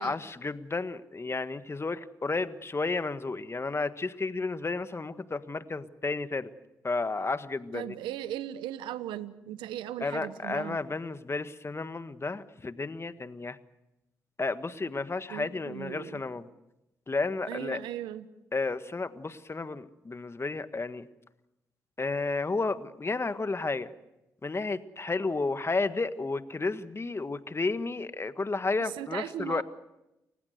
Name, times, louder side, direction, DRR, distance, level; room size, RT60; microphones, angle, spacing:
voice 1, 0.0-6.5 6.8-7.9 10.0-13.6 14.4-16.5 17.1-17.8 18.5-21.1 22.0-23.9 24.4-29.6, left 3 dB, 35° left, 12 dB, 1.5 m, -32 dB
voice 2, 7.7-10.8 15.3-16.2 17.5-18.3 28.8-29.6, right 12 dB, 85° right, 14 dB, 1.1 m, -38 dB
29.0 x 16.0 x 8.0 m, 0.92 s
hypercardioid pair, 45°, 8 cm